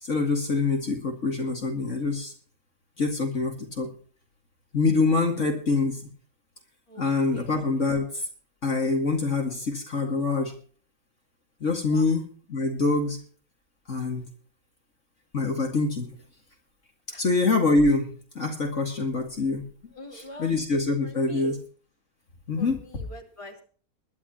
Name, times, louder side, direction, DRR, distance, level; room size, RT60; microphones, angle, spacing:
voice 1, 0.0-2.3 3.0-3.9 4.7-6.0 7.0-8.3 8.6-10.5 11.6-12.2 12.5-13.2 13.9-14.3 15.3-16.1 17.2-19.6 20.1-21.6 22.5-22.8, left 3 dB, 55° left, 2 dB, 2.4 m, -25 dB
voice 2, 19.9-20.5 21.0-21.6 22.6-23.6, equal, 20° left, 1 dB, 3.2 m, -43 dB
22.0 x 11.5 x 3.0 m, 0.43 s
omnidirectional pair, 1.6 m